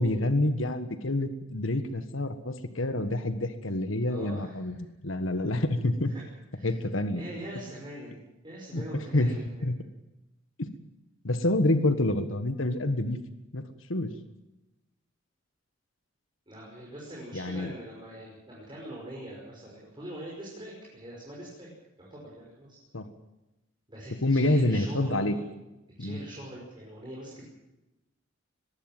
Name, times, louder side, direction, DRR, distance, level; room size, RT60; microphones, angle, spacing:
voice 1, 0.0-4.8 5.0-6.1 6.6-7.2 8.7-8.8 9.1-9.3 9.6-9.8 10.6-10.7 11.2-13.2 13.5-14.1 17.3-17.7 22.9-23.1 24.2-25.4 26.0-26.2, left 1 dB, 85° left, 9 dB, 1.5 m, -27 dB
voice 2, 4.1-4.5 6.1-6.2 6.5-6.8 7.1-9.6 16.5-21.7 22.0-22.8 23.9-25.4 26.0-27.5, right 1 dB, 25° right, -4 dB, 5.9 m, -43 dB
21.5 x 15.5 x 9.1 m, 0.96 s
head